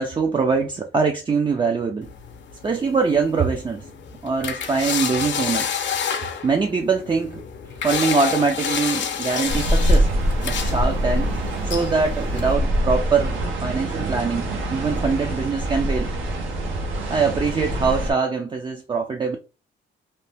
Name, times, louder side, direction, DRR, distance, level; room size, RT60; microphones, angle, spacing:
voice 1, 0.0-2.1 2.6-3.9 4.2-5.7 6.4-7.4 7.8-10.1 10.4-16.1 17.1-19.4, right 4 dB, 25° right, 0.4 m, -23 dB
sound 1, 2.0-12.5, left 7 dB, 65° left, 0.6 m, -30 dB
sound 2, 9.5-18.1, right 1 dB, 80° right, 0.8 m, -24 dB
2.8 x 2.1 x 3.3 m
cardioid pair, 90°, 20 cm